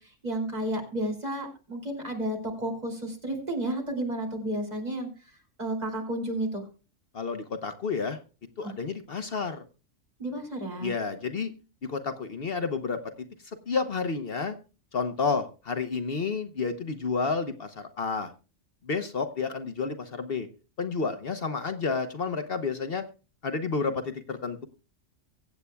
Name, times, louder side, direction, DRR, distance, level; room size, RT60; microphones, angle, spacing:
voice 1, 0.2-5.1 5.6-6.6 8.6-8.7 10.2-10.9, right 1 dB, 35° right, 1 dB, 3.0 m, -32 dB
voice 2, 7.1-8.2 8.6-9.6 10.8-11.5 11.8-13.1 13.4-14.6 14.9-18.3 18.8-20.5 20.8-23.0 23.4-24.7, left 4 dB, 55° left, 9 dB, 1.0 m, -30 dB
24.0 x 8.3 x 2.3 m, 0.33 s
omnidirectional pair, 1.2 m